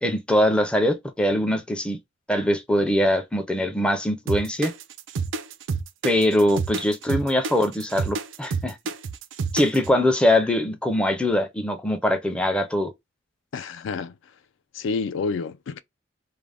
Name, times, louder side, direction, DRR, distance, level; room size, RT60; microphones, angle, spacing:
voice 1, 0.0-2.0 2.3-4.7 6.0-8.8 9.5-12.9, left 1 dB, 5° left, 0.4 m, -22 dB
sound 1, 4.3-9.9, right 4 dB, 75° right, 0.4 m, -28 dB
voice 2, 13.5-14.1 14.7-15.8, left 4 dB, 75° left, 0.3 m, -29 dB
2.5 x 2.1 x 3.2 m
head